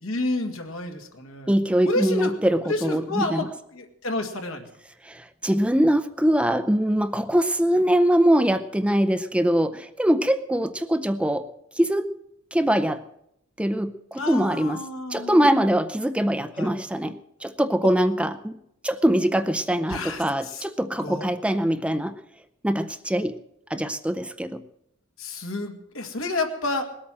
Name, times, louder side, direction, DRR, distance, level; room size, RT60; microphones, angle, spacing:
voice 1, 0.0-1.5 1.8-2.3 2.6-4.7 14.2-15.5 16.6-16.7 17.8-17.9 19.9-20.7 21.0-21.3 25.2-26.9, left 2 dB, 75° left, 4 dB, 2.0 m, -30 dB
voice 2, 1.5-3.4 5.0-11.5 11.8-12.1 12.5-13.0 13.6-14.8 15.1-18.6 18.8-22.2 22.6-23.4 23.7-24.6, right 1 dB, 5° right, 11 dB, 0.5 m, -23 dB
20.0 x 8.7 x 7.5 m, 0.78 s
head